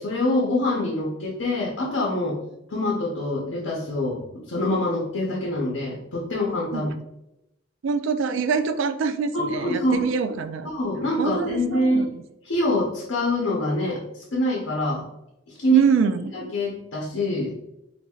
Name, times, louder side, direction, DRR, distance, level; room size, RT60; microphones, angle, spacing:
voice 1, 0.0-2.4 2.7-6.9 9.3-10.1 10.6-12.0 12.4-15.0 15.5-15.9 16.3-17.5, left 1 dB, 75° left, -3 dB, 0.7 m, -25 dB
voice 2, 7.8-10.7 11.2-12.2 15.7-16.3, right 5 dB, 75° right, 10 dB, 0.3 m, -24 dB
4.4 x 2.6 x 2.3 m, 0.87 s
head